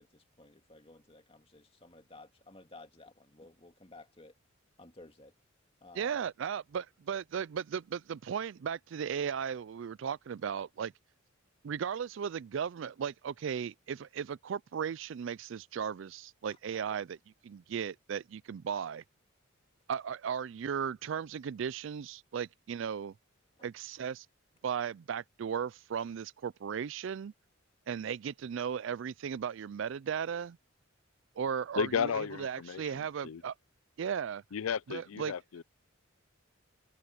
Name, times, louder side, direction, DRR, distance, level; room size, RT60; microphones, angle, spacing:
voice 1, 0.0-4.3 4.8-5.3 5.8-6.2, left 2 dB, 30° left, 2.3 m, -55 dB
voice 2, 6.0-10.9 11.6-17.2 17.4-19.0 19.9-23.1 23.6-24.3 24.6-27.3 27.9-30.6 31.4-33.5 34.0-34.4 34.9-35.3, right 7 dB, 65° right, 0.4 m, -36 dB
voice 3, 31.8-32.8 33.2-33.4 34.5-35.6, left 7 dB, 85° left, 0.4 m, -33 dB
head